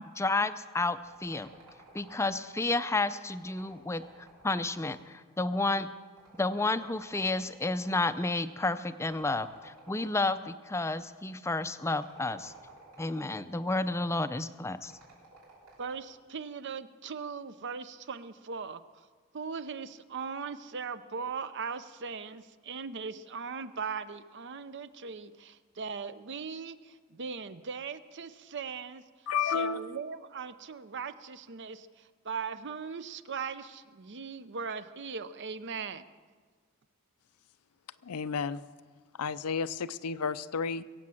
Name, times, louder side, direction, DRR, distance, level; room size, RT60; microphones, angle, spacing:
voice 1, 0.2-1.5 1.9-4.0 4.4-5.9 6.3-12.5 13.0-14.9, left 2 dB, 10° left, 13 dB, 0.5 m, -31 dB
sound 1, 0.9-2.5 3.4-5.2 6.2-8.0 9.0-10.4 11.9-13.5 14.8-16.1, right 3 dB, 85° right, 6.3 m, -54 dB
voice 2, 15.8-19.1 19.3-29.0 29.5-36.1, right 5 dB, 55° right, 13 dB, 0.7 m, -39 dB
voice 3, 29.3-29.8 38.0-38.6 39.2-40.8, left 6 dB, 90° left, 14 dB, 0.6 m, -31 dB
22.0 x 8.5 x 7.7 m, 1.5 s
head